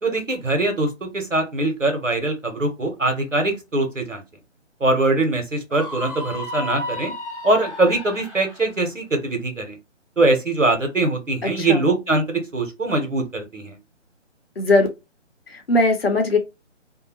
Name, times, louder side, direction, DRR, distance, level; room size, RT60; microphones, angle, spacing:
voice 1, 0.0-4.2 4.8-7.1 7.4-9.8 10.2-13.8, right 2 dB, 85° right, 1.2 m, -22 dB
Screaming, 5.7-8.6, left 2 dB, ahead, 0.7 m, -33 dB
voice 2, 11.4-11.8 14.6-14.9 15.5-16.4, left 2 dB, 55° left, 0.9 m, -19 dB
2.7 x 2.2 x 3.0 m
figure-of-eight pair, 150°, 37 cm